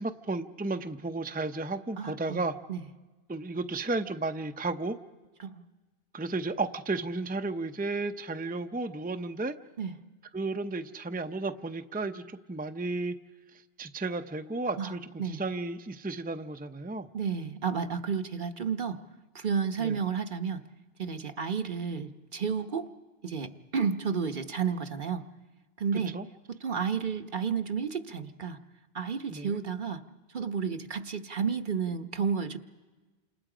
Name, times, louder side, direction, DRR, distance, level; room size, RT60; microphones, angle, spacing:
voice 1, 0.0-2.5 3.3-5.0 6.1-9.5 10.3-13.1 13.8-17.1 19.8-20.0 26.1-26.2 29.3-29.6, right 3 dB, 10° right, 8 dB, 0.6 m, -33 dB
voice 2, 2.0-2.8 5.4-5.6 9.8-10.0 14.8-14.9 15.2-15.4 17.1-19.0 19.3-20.6 21.0-22.9 23.2-25.2 25.8-26.1 26.5-28.6 28.9-30.0 30.3-32.6, right 6 dB, 55° right, 8 dB, 1.1 m, -31 dB
29.0 x 27.5 x 5.0 m, 1.2 s
omnidirectional pair, 1.0 m